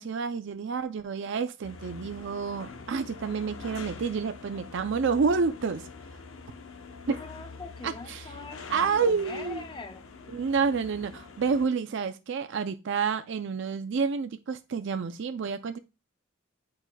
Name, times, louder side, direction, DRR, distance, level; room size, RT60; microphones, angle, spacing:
voice 1, 0.0-5.9 7.1-7.2 7.8-8.3 8.7-9.6 10.3-15.8, right 5 dB, 65° right, 0.4 m, -29 dB
sound 1, 1.6-11.7, left 4 dB, 90° left, 0.8 m, -45 dB
voice 2, 7.2-10.0, left 3 dB, 25° left, 0.7 m, -42 dB
9.8 x 4.8 x 2.2 m
head